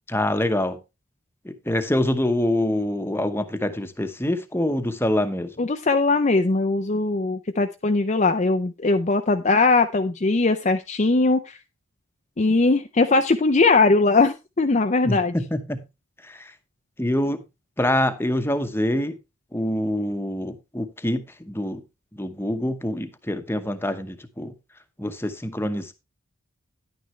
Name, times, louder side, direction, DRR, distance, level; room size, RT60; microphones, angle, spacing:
voice 1, 0.1-0.8 1.4-5.5 15.0-15.8 16.2-16.5 17.0-17.4 17.8-19.2 19.5-21.8 22.1-24.5 25.0-25.9, left 1 dB, 10° left, 0.9 m, -25 dB
voice 2, 5.6-11.6 12.4-15.3, left 3 dB, 35° left, 0.5 m, -20 dB
10.5 x 9.4 x 3.2 m
head